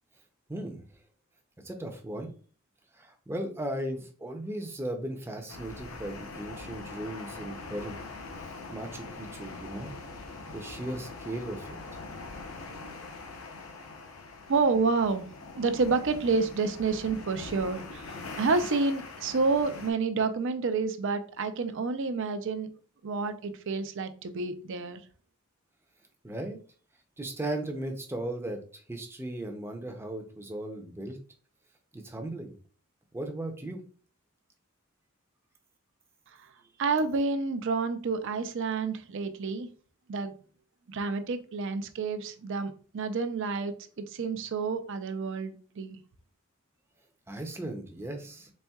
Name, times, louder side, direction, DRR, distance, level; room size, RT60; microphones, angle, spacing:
voice 1, 0.5-0.8 1.6-2.3 2.9-8.0 8.7-9.9 10.5-11.8 26.2-26.6 27.2-31.2 31.9-32.5 33.1-33.8 47.3-48.5, right 1 dB, 10° right, 4 dB, 0.5 m, -37 dB
sound 1, 5.5-19.9, left 3 dB, 75° left, 0.7 m, -43 dB
voice 2, 14.5-15.3 15.5-22.7 23.0-25.0 36.8-39.7 40.1-40.3 40.9-46.0, right 4 dB, 60° right, 9 dB, 0.5 m, -29 dB
4.2 x 3.5 x 2.3 m, 0.41 s
head